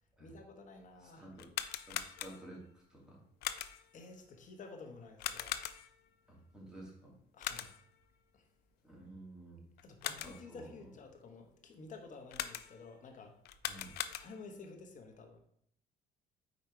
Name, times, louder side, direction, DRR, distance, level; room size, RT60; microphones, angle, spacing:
voice 1, 0.2-1.2 3.9-5.6 7.3-7.7 8.3-8.4 9.8-13.4 14.2-15.4, left 3 dB, 50° left, 3 dB, 1.3 m, -52 dB
voice 2, 1.0-1.5 1.9-3.2 6.3-7.2 8.8-9.7 10.2-10.9 13.6-13.9, right 1 dB, 5° right, -4 dB, 2.5 m, -52 dB
sound 1, 1.3-2.6 3.4-4.0 5.2-6.1 7.4-8.0 9.8-10.5 12.3-12.9 13.4-14.6, left 11 dB, 70° left, 0.4 m, -41 dB
5.2 x 4.5 x 4.5 m, 0.68 s
cardioid pair, 110°, 17 cm